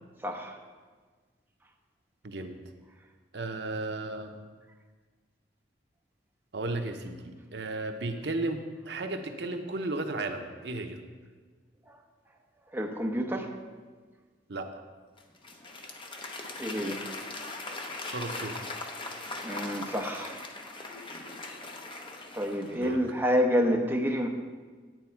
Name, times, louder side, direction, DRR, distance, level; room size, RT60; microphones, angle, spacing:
voice 1, 0.2-0.6 11.9-12.0 12.7-13.5 16.6-17.0 19.4-20.4 22.3-24.3, equal, 10° right, 1 dB, 0.8 m, -28 dB
voice 2, 2.2-2.6 3.3-4.3 6.5-11.0 14.5-14.7 18.1-18.6 22.7-23.0, right 2 dB, 70° right, 5 dB, 0.8 m, -34 dB
Applause / Crowd, 15.2-23.0, left 2 dB, 30° left, 0.8 m, -40 dB
9.7 x 9.2 x 4.5 m, 1.5 s
head